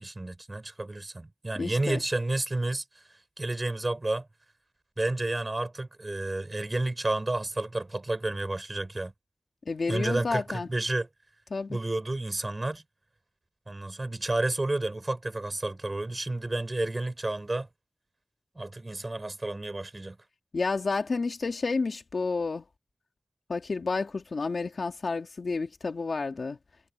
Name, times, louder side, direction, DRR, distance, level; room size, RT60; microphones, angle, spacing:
voice 1, 0.0-3.0 3.4-4.3 5.0-9.1 9.9-11.1 11.7-12.8 13.7-17.7 18.5-20.2, right 2 dB, 35° right, 4.9 m, -31 dB
voice 2, 1.6-2.0 9.7-10.7 11.5-11.8 20.5-22.6 23.5-26.6, left 4 dB, 75° left, 2.5 m, -30 dB
wide cardioid pair, 85°, 0 cm